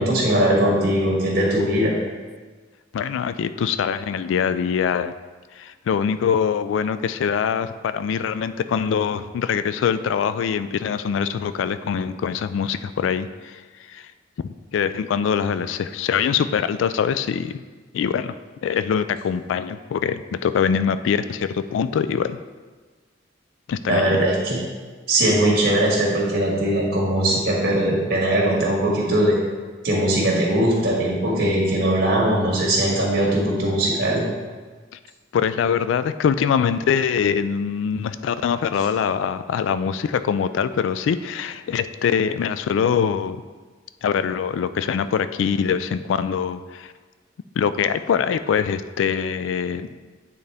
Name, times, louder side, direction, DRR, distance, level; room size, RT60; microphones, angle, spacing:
voice 1, 0.0-1.9 23.9-24.6 25.1-29.4 29.8-34.2, right 1 dB, 55° right, -3 dB, 1.7 m, -20 dB
voice 2, 2.9-5.1 5.6-13.6 13.9-14.1 14.4-17.6 17.9-18.4 18.6-22.4 23.7-24.2 35.3-43.4 44.0-46.9 47.6-49.9, left 7 dB, 80° left, 13 dB, 0.3 m, -23 dB
8.8 x 4.0 x 3.4 m, 1.4 s
head